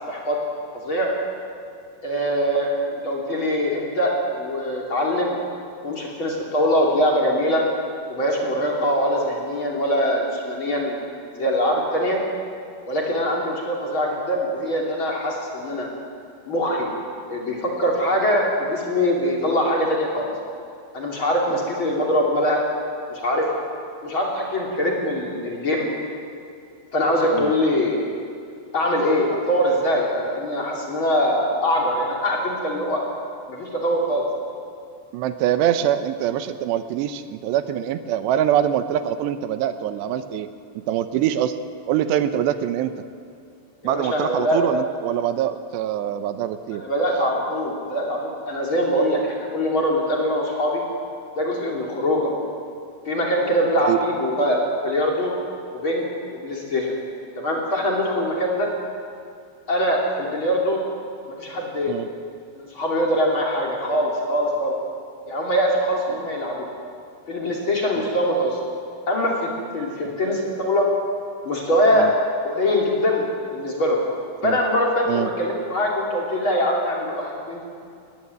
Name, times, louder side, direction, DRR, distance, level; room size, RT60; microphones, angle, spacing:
voice 1, 0.1-0.4 0.7-1.1 2.0-5.4 5.8-7.6 8.1-10.9 11.3-12.2 12.9-15.9 16.5-16.9 17.3-20.3 20.9-22.6 23.1-23.5 24.0-25.9 26.9-28.0 28.7-33.0 33.5-34.3 43.8-44.6 46.7-50.8 51.4-52.3 53.1-55.3 55.7-56.9 57.4-58.7 59.7-60.8 61.3-61.9 62.6-64.7 65.3-66.7 67.3-68.6 69.1-70.9 71.4-72.1 72.4-73.2 73.5-74.0 74.4-77.7, equal, 35° left, -2 dB, 3.2 m, -23 dB
voice 2, 35.1-40.5 40.9-41.6 41.9-43.0 43.8-46.8 53.8-54.0 61.9-62.1 67.9-68.1 71.9-72.1 74.4-74.6 75.1-75.3, right 11 dB, 85° right, 11 dB, 3.0 m, -24 dB
19.5 x 15.5 x 9.6 m, 2.4 s
omnidirectional pair, 4.9 m